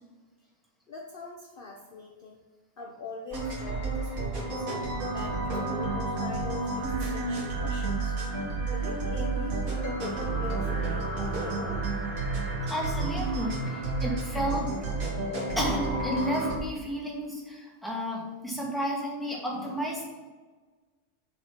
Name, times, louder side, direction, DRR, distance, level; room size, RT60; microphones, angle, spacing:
voice 1, 0.9-2.4 2.8-8.2 8.7-11.8, left 4 dB, 45° left, 0 dB, 1.0 m, -42 dB
sound 1, 3.3-16.6, right 3 dB, 80° right, 2.4 m, -31 dB
voice 2, 12.7-14.7 15.6-20.0, equal, ahead, -4 dB, 2.1 m, -32 dB
6.8 x 5.4 x 5.8 m, 1.3 s
omnidirectional pair, 1.4 m